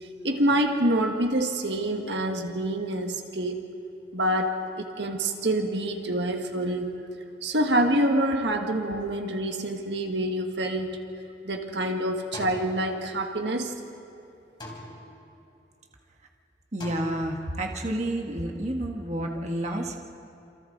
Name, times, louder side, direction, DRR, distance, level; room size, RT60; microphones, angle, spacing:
voice 1, 0.2-3.6 4.1-6.9 7.4-11.0 11.4-13.7, right 1 dB, 75° right, 4 dB, 1.7 m, -26 dB
sound 1, 10.8-11.7 12.3-13.6 14.6-15.6 16.8-17.8, left 1 dB, 25° left, 3.7 m, -43 dB
voice 2, 16.7-20.0, right 1 dB, 40° right, 1 dB, 1.5 m, -30 dB
28.0 x 28.0 x 3.9 m, 2.7 s
head